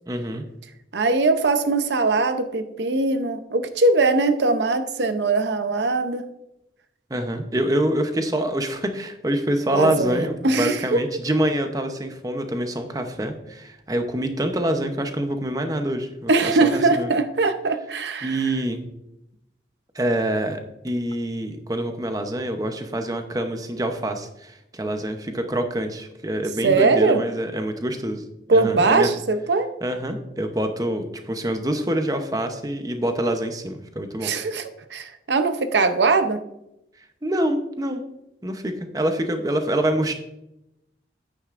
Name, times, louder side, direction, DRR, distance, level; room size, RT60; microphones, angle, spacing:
voice 1, 0.1-0.5 7.1-17.1 18.2-18.8 19.9-29.1 29.8-34.3 37.2-38.0 38.4-40.1, right 1 dB, 20° right, 6 dB, 0.7 m, -26 dB
voice 2, 0.9-6.2 9.7-11.0 16.3-18.5 26.6-27.2 28.5-29.7 34.2-36.4, right 3 dB, 75° right, 9 dB, 0.7 m, -21 dB
9.9 x 9.0 x 2.5 m, 0.85 s
head